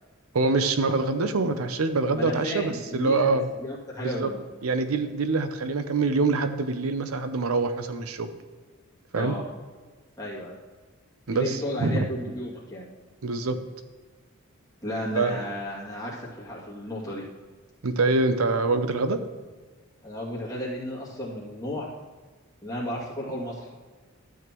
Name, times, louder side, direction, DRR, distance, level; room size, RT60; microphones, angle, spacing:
voice 1, 0.3-3.5 4.0-4.3 4.6-8.3 9.1-9.3 11.3-12.0 13.2-13.6 15.1-15.4 17.8-19.2, right 3 dB, 80° right, 9 dB, 0.7 m, -25 dB
voice 2, 2.1-3.3 3.6-4.4 9.1-9.4 10.2-10.6 11.3-12.9 14.8-17.2 20.0-21.9 22.6-23.7, left 1 dB, 20° left, -6 dB, 2.4 m, -33 dB
12.5 x 8.0 x 3.0 m, 1.4 s
head